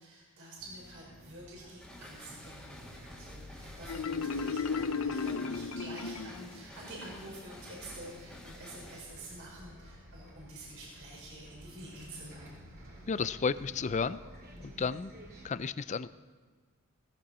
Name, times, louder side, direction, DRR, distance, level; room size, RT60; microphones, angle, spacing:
voice 1, 0.0-12.7, right 1 dB, 65° right, -3 dB, 4.8 m, -48 dB
Bus, 0.6-15.5, equal, 45° right, 2.8 m, -52 dB
sound 1, 1.8-9.0, left 1 dB, 5° left, 2.1 m, -51 dB
Marimba xylophone, 3.9-6.6, left 5 dB, 75° left, 0.7 m, -34 dB
voice 2, 13.1-14.2 14.6-15.1 15.4-16.1, left 5 dB, 35° left, 15 dB, 0.4 m, -32 dB
17.5 x 15.0 x 4.3 m, 1.5 s
head